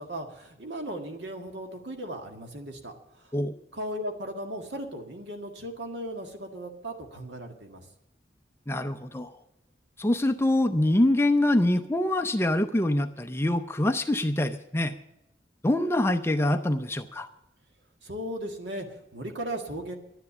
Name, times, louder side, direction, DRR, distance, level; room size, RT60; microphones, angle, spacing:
voice 1, 0.0-3.3 3.7-7.9 18.0-19.9, right 1 dB, 75° right, 4 dB, 1.8 m, -37 dB
voice 2, 8.7-9.3 10.0-14.9 15.6-17.3, left 1 dB, 15° left, 8 dB, 0.5 m, -25 dB
12.0 x 10.0 x 7.0 m, 0.86 s
head